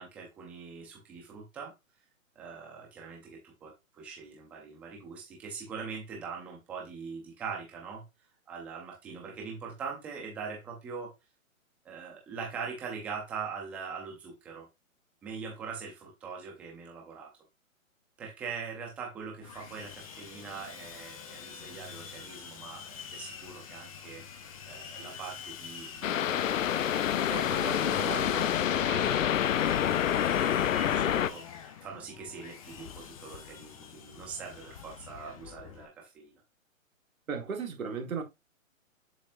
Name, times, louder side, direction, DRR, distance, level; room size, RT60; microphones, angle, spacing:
voice 1, 0.0-1.7 2.4-8.0 8.5-11.1 11.8-14.7 15.2-17.3 18.2-24.2 24.7-26.2 27.3-29.3 29.5-36.4, right 5 dB, 5° right, 0.6 m, -42 dB
Sawing, 19.4-35.9, left 7 dB, 25° left, 0.8 m, -46 dB
sound 1, 26.0-31.3, left 10 dB, 65° left, 0.6 m, -27 dB
voice 2, 37.3-38.2, right 6 dB, 80° right, 1.9 m, -34 dB
7.2 x 5.2 x 2.6 m
hypercardioid pair, 155°, 41 cm